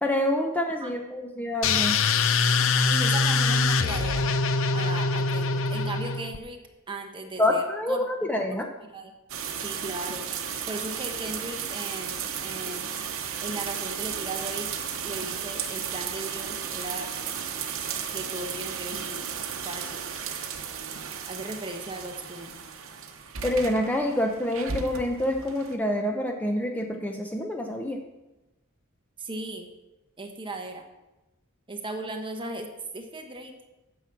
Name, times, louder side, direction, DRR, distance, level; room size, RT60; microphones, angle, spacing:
voice 1, 0.0-2.0 7.4-8.7 23.4-28.0, left 1 dB, 10° left, 2 dB, 0.8 m, -27 dB
sound 1, 1.6-6.4, left 4 dB, 70° left, 0.7 m, -23 dB
voice 2, 2.9-4.3 4.7-6.6 6.9-8.4 8.9-9.1 9.6-10.3 10.7-12.9 13.4-14.7 15.0-17.1 18.1-20.0 21.3-22.5 29.2-29.7 30.2-30.9 31.7-33.5, right 2 dB, 25° right, 4 dB, 1.2 m, -37 dB
sound 2, 9.3-25.7, right 7 dB, 65° right, 1.0 m, -34 dB
9.6 x 6.2 x 7.3 m, 1.0 s
head